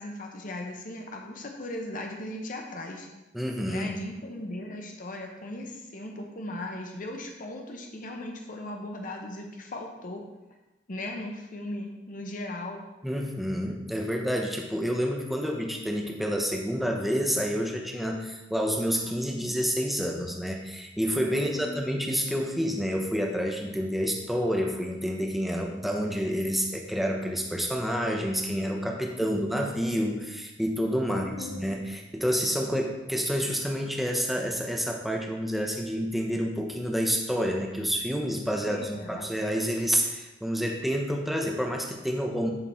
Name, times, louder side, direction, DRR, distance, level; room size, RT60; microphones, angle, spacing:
voice 1, 0.0-3.1 3.6-10.2 10.9-12.8 19.4-19.5 21.3-21.8 29.2-29.6 29.9-30.0 31.1-31.6 38.6-39.2, left 1 dB, 45° left, 2 dB, 0.9 m, -38 dB
voice 2, 3.3-3.9 13.0-38.8 39.1-42.5, equal, ahead, 1 dB, 0.9 m, -29 dB
11.0 x 3.9 x 4.4 m, 1.0 s
head